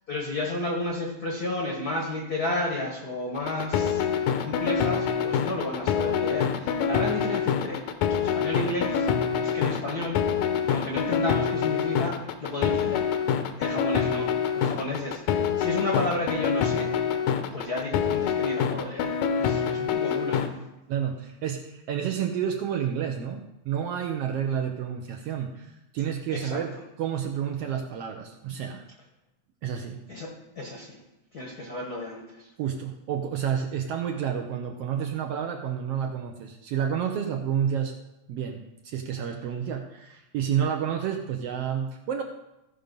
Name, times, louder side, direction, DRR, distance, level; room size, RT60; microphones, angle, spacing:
voice 1, 0.1-7.8 8.2-9.1 9.4-10.2 10.7-13.0 13.6-16.9 17.5-20.4 26.3-26.6 30.1-30.3 30.5-31.0 31.3-32.5, left 2 dB, 55° left, -1 dB, 1.1 m, -32 dB
sound 1, 3.4-20.5, left 7 dB, 80° left, 2.1 m, -26 dB
voice 2, 20.9-28.8 29.6-30.0 32.6-37.9 38.3-42.2, right 8 dB, 75° right, 3 dB, 1.5 m, -30 dB
15.0 x 5.3 x 5.2 m, 0.93 s
omnidirectional pair, 3.3 m